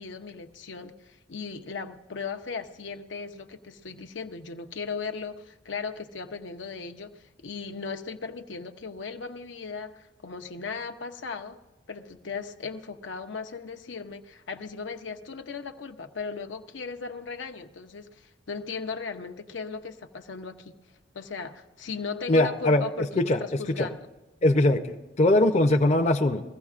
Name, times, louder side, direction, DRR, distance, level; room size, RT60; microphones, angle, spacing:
voice 1, 0.0-11.6 11.9-20.7 21.1-24.1, left 5 dB, 75° left, 6 dB, 0.7 m, -37 dB
voice 2, 22.3-22.8 23.2-23.4 23.8-23.9 24.4-26.5, left 1 dB, 35° left, 4 dB, 0.6 m, -21 dB
21.5 x 15.0 x 2.5 m, 1.1 s
head